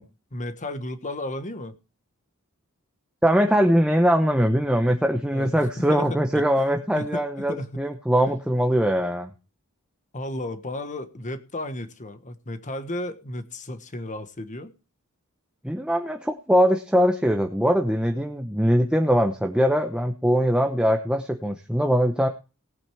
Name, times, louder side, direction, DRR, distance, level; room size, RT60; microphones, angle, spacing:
voice 1, 0.3-1.7 5.3-7.8 8.3-8.4 10.1-14.7, left 1 dB, 35° left, 10 dB, 1.3 m, -34 dB
voice 2, 3.2-9.3 15.6-22.3, equal, 5° right, 4 dB, 0.9 m, -22 dB
18.5 x 8.9 x 3.5 m, 0.33 s
head